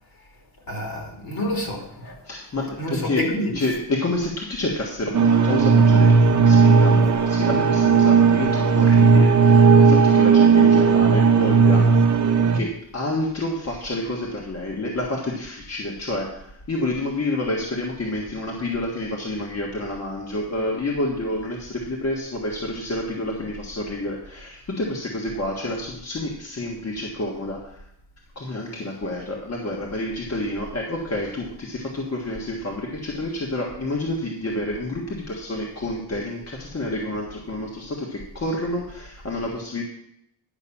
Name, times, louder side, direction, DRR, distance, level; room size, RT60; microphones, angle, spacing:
voice 1, 0.7-2.1 2.8-3.7, left 1 dB, 55° left, 0 dB, 3.2 m, -28 dB
voice 2, 2.2-3.3 3.5-11.9 12.5-27.8 28.3-39.8, left 1 dB, 35° left, -1 dB, 1.6 m, -29 dB
sound 1, 5.1-12.6, right 5 dB, 45° right, 0.9 m, -15 dB
10.5 x 5.7 x 7.1 m, 0.75 s
wide cardioid pair, 150°, 42 cm